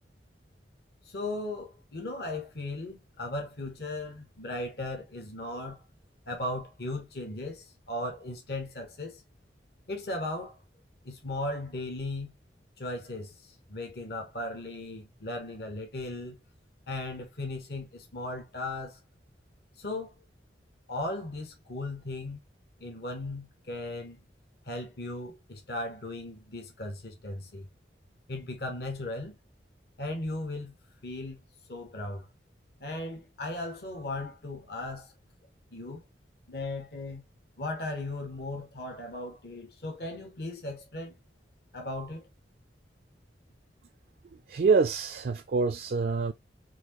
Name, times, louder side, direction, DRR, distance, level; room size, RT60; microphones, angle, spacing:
voice 1, 1.0-5.8 6.3-9.2 9.9-10.6 11.0-12.3 12.8-16.4 16.9-19.0 19.8-20.1 20.9-22.4 22.8-24.2 24.6-27.7 28.3-29.4 30.0-30.7 31.0-31.4 31.7-32.3 32.8-35.1 35.7-36.0 36.5-37.2 37.6-41.2 41.7-42.3, left 2 dB, 60° left, 1.0 m, -37 dB
voice 2, 44.5-46.3, right 4 dB, 55° right, 0.3 m, -25 dB
4.2 x 2.6 x 2.9 m
head